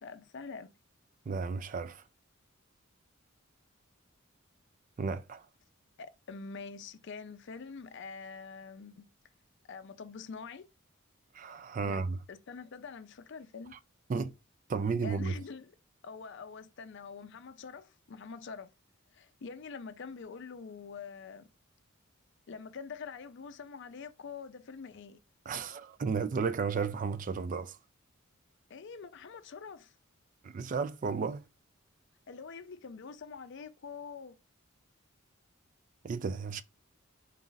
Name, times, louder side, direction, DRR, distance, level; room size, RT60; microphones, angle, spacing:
voice 1, 0.0-0.7 6.0-9.1 9.7-10.7 11.8-12.0 12.3-13.7 15.0-15.7 16.0-18.7 19.1-21.5 22.5-25.2 28.7-29.9 32.3-34.4, left 5 dB, 55° left, 0.5 m, -45 dB
voice 2, 1.3-2.0 5.0-5.5 11.3-12.2 14.1-14.3 14.7-15.3 25.5-27.8 30.4-31.5 36.0-36.6, right 5 dB, 40° right, 0.3 m, -33 dB
4.0 x 2.4 x 3.8 m
head